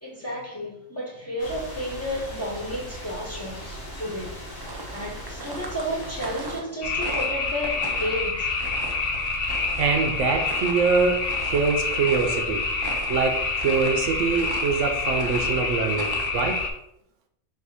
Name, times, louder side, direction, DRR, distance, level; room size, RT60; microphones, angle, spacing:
voice 1, 0.0-4.5 4.9-8.6, equal, 15° left, 0.9 m, -32 dB
sound 1, 1.4-6.6, equal, 90° left, 1.6 m, -39 dB
sound 2, 4.6-16.7, right 3 dB, 35° right, 0.3 m, -40 dB
sound 3, 6.8-16.7, left 3 dB, 55° left, 0.9 m, -27 dB
voice 2, 9.8-12.7 13.1-16.6, right 5 dB, 80° right, 1.0 m, -24 dB
3.9 x 2.7 x 4.7 m
omnidirectional pair, 1.3 m